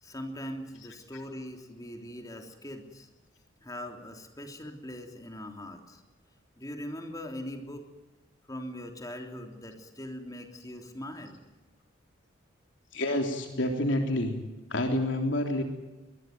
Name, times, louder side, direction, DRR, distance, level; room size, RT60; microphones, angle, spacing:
voice 1, 0.0-3.1 3.6-6.0 6.6-7.9 8.5-11.4, equal, 20° left, 4 dB, 3.3 m, -41 dB
voice 2, 12.9-14.4 14.7-15.6, left 1 dB, 65° left, 3 dB, 3.5 m, -28 dB
22.5 x 21.5 x 9.5 m, 1.1 s
head